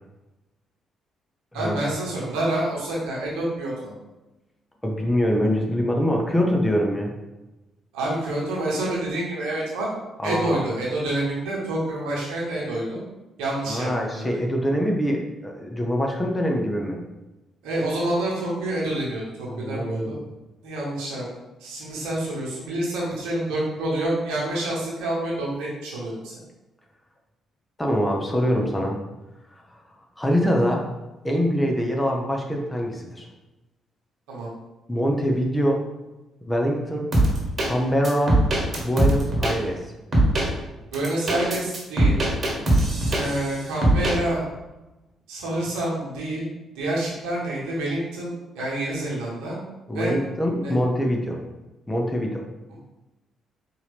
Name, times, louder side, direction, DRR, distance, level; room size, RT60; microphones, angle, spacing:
voice 1, 1.5-3.9 7.9-9.9 10.2-13.0 13.4-14.3 17.6-20.2 20.6-21.3 21.6-26.3 34.3-34.5 40.9-42.2 43.1-44.4 45.3-46.5 46.7-49.6 49.9-50.1 50.6-50.7, right 1 dB, 75° right, -5 dB, 1.3 m, -27 dB
voice 2, 4.8-7.1 10.2-10.6 13.7-17.0 19.5-20.2 27.8-29.0 30.2-30.9 31.2-33.3 34.9-35.8 36.5-37.1 37.6-38.4 38.8-39.8 48.6-48.7 49.9-51.4 51.9-52.4, equal, 15° left, 0 dB, 0.9 m, -24 dB
sound 1, 37.1-37.7 38.0-39.5 40.1-40.5 40.9-43.5 43.8-44.1, right 1 dB, 40° right, 1.3 m, -20 dB
4.5 x 2.8 x 3.4 m, 1.1 s
hypercardioid pair, 45°, 0 cm